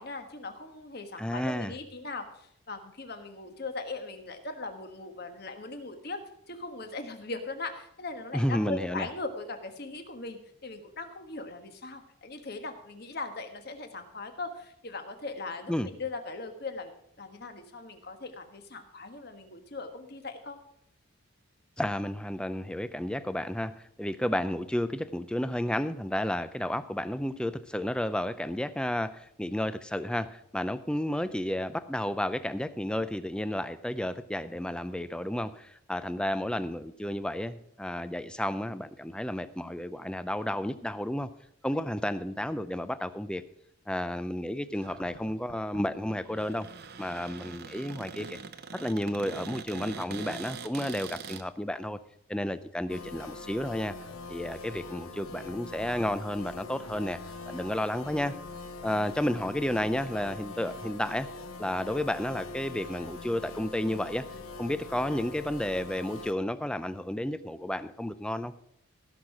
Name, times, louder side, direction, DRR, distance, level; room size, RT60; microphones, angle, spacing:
voice 1, 0.0-6.2 6.5-20.6 41.7-41.8, left 3 dB, 50° left, 7 dB, 1.3 m, -39 dB
voice 2, 1.2-1.7 8.3-9.1 15.7-15.9 21.8-41.3 41.6-43.5 43.9-46.7 47.0-48.4 48.7-52.0 52.3-54.0 54.3-57.2 57.5-58.4 58.8-61.3 61.6-64.3 64.6-68.5, left 1 dB, 5° left, 13 dB, 0.4 m, -32 dB
Cupboard open or close, 44.7-51.4, right 5 dB, 50° right, 0.7 m, -43 dB
sound 1, 52.9-66.3, left 3 dB, 85° left, 1.0 m, -43 dB
16.0 x 6.5 x 5.9 m, 0.74 s
head